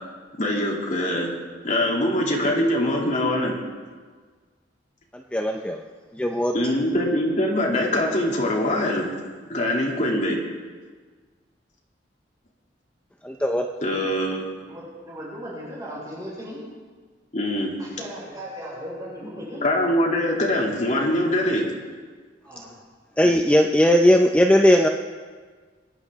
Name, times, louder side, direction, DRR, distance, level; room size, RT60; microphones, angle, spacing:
voice 1, 0.4-1.3 1.6-3.5 6.5-9.1 9.5-10.4 13.8-14.4 17.3-17.7 19.6-21.6, left 1 dB, 45° left, -2 dB, 2.6 m, -23 dB
voice 2, 5.1-5.8 6.1-6.5 13.2-13.7 23.2-24.9, equal, 5° left, 2 dB, 0.5 m, -18 dB
voice 3, 14.6-16.6 17.8-19.6 22.4-22.8, equal, 20° right, -6 dB, 4.5 m, -37 dB
22.5 x 9.8 x 3.6 m, 1.5 s
head